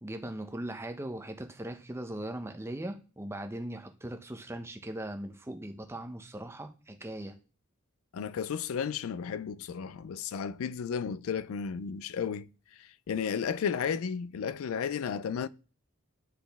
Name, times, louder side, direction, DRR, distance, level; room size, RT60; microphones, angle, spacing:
voice 1, 0.0-7.4, right 1 dB, 10° right, 0.6 m, -39 dB
voice 2, 8.1-15.5, left 7 dB, 70° left, 0.3 m, -33 dB
9.8 x 4.1 x 3.5 m
head